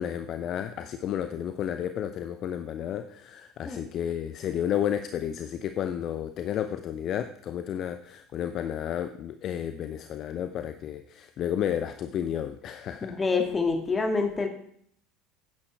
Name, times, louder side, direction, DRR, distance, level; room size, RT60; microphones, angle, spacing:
voice 1, 0.0-13.2, left 10 dB, 40° left, 10 dB, 0.6 m, -32 dB
voice 2, 13.0-14.5, left 4 dB, 20° left, 4 dB, 2.3 m, -26 dB
14.0 x 9.6 x 3.5 m, 0.64 s
figure-of-eight pair, 65°, 0 cm